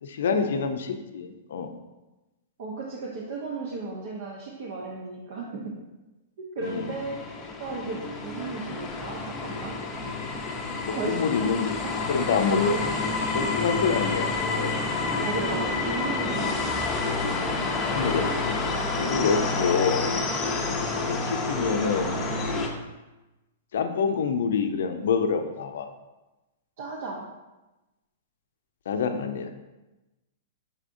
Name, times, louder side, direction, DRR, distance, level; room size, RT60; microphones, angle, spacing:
voice 1, 0.0-1.7 6.6-6.9 10.8-11.7 12.1-12.8 13.3-14.8 17.9-18.6 19.0-20.0 20.8-22.2 22.4-22.7 23.7-25.9 28.9-29.5, left 5 dB, 75° left, 7 dB, 0.4 m, -27 dB
voice 2, 2.6-5.7 6.4-7.2 7.6-9.8 10.9-11.9 15.2-16.9 19.1-19.5 20.1-20.3 26.8-27.2, right 3 dB, 65° right, -2 dB, 0.7 m, -35 dB
sound 1, 6.6-22.7, left 3 dB, 20° left, 0.6 m, -29 dB
5.7 x 3.5 x 2.5 m, 1.1 s
hypercardioid pair, 125°, 0 cm